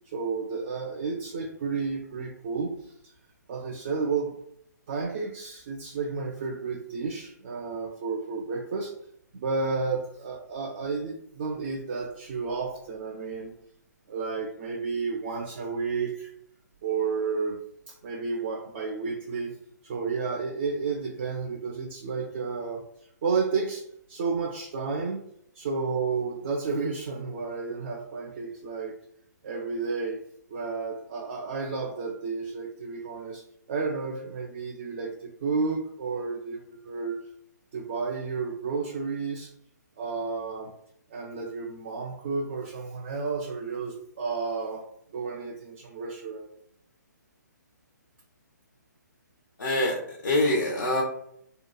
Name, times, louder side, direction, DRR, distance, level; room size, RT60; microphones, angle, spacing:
voice 1, 0.1-2.9 3.5-4.3 4.9-8.9 9.3-13.5 14.1-16.3 16.8-17.6 17.9-19.6 19.8-22.9 23.2-25.3 25.5-29.0 29.4-30.2 30.5-33.4 33.7-37.2 37.7-39.5 40.0-40.8 41.1-44.9 45.1-46.5, right 4 dB, 35° right, 1 dB, 0.4 m, -31 dB
voice 2, 49.6-51.0, left 1 dB, 75° left, -2 dB, 0.6 m, -25 dB
2.7 x 2.2 x 2.2 m, 0.71 s
figure-of-eight pair, 135°, 10 cm